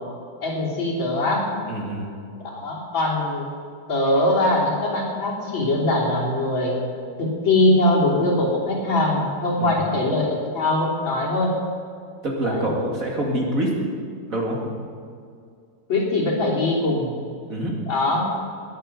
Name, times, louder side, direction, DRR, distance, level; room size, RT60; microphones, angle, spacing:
voice 1, 0.4-1.5 2.5-3.5 3.9-6.8 7.2-11.6 12.4-12.7 15.9-17.2 17.9-18.3, left 2 dB, 70° left, -4 dB, 4.1 m, -22 dB
voice 2, 1.7-2.1 9.6-9.7 12.2-13.8 14.3-14.7 17.5-17.7, right 1 dB, 45° right, -2 dB, 2.8 m, -25 dB
20.5 x 8.8 x 6.8 m, 2.3 s
omnidirectional pair, 2.2 m